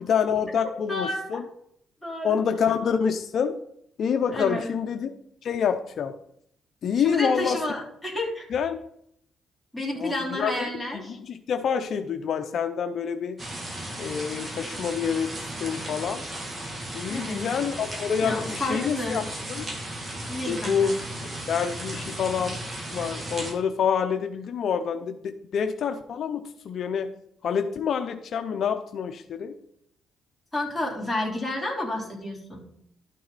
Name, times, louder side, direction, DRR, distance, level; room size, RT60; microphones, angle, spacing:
voice 1, 0.1-1.4 2.2-3.5 4.0-5.1 5.4-6.1 6.8-7.6 8.5-8.8 10.0-13.4 14.0-15.3 15.6-16.2 16.9-19.7 20.5-20.9 21.5-22.6 22.9-27.1 27.4-29.5, left 7 dB, 60° left, 7 dB, 0.7 m, -27 dB
voice 2, 0.9-1.4 2.0-2.4 4.3-4.7 6.9-8.5 9.7-11.2 17.1-17.5 18.2-19.2 20.3-20.9 30.5-32.7, left 1 dB, 5° left, -3 dB, 3.6 m, -30 dB
sound 1, 13.4-23.5, right 1 dB, 30° right, 2.4 m, -35 dB
12.5 x 6.4 x 4.1 m, 0.72 s
cardioid pair, 90°, 0 cm